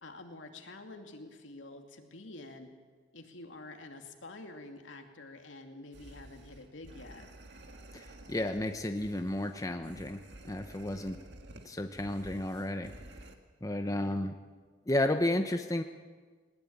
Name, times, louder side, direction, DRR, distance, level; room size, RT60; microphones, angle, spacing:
voice 1, 0.0-2.7 3.1-7.2 13.8-14.2, left 2 dB, 80° left, 4 dB, 2.6 m, -48 dB
sound 1, 5.9-13.4, right 1 dB, 60° right, 1.9 m, -52 dB
voice 2, 7.9-10.2 10.4-11.2 11.6-12.9 13.6-14.3 14.9-15.8, left 1 dB, 20° left, 6 dB, 0.9 m, -32 dB
19.5 x 19.5 x 8.8 m, 1.5 s
head